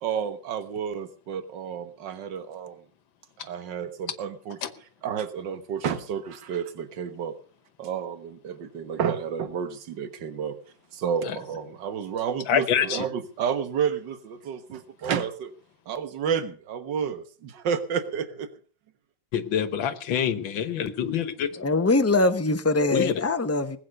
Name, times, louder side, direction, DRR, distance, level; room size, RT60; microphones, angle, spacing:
voice 1, 0.0-2.8 3.4-4.6 5.0-7.3 7.8-10.6 10.9-15.5 15.9-18.5, right 7 dB, 70° right, 2.0 m, -30 dB
voice 2, 12.5-13.1 19.3-21.5 22.9-23.2, left 9 dB, 85° left, 1.8 m, -26 dB
voice 3, 21.6-23.8, left 2 dB, 10° left, 0.8 m, -22 dB
20.0 x 8.5 x 6.5 m
omnidirectional pair, 2.0 m